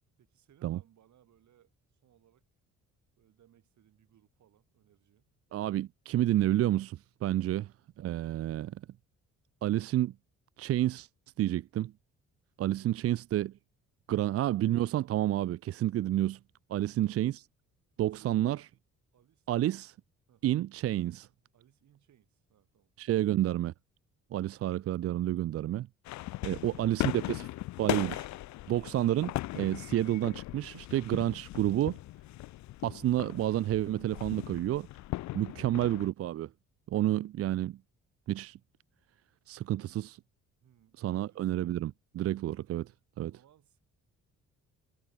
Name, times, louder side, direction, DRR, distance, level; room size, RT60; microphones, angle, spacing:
voice 1, 0.2-2.4 3.2-5.3 12.8-13.1 16.8-17.2 18.0-18.7 19.1-19.7 20.3-20.6 21.5-22.9 26.5-26.9 35.5-35.8 40.6-41.5 43.2-43.8, right 11 dB, 70° right, 5.8 m, -65 dB
voice 2, 5.5-7.7 8.0-8.8 9.6-10.1 10.6-11.1 11.4-11.9 12.6-13.5 14.1-16.4 16.7-17.4 18.0-18.6 19.5-19.9 20.4-21.3 23.0-23.7 24.3-25.9 26.4-27.5 27.8-28.3 28.7-32.0 32.8-34.9 35.3-36.5 36.9-37.8 38.3-38.6 39.5-40.2 41.0-42.9 43.2-43.3, right 13 dB, 50° right, 0.4 m, -30 dB
sound 1, 26.0-36.1, left 17 dB, 65° left, 0.5 m, -38 dB
cardioid pair, 90°, 30 cm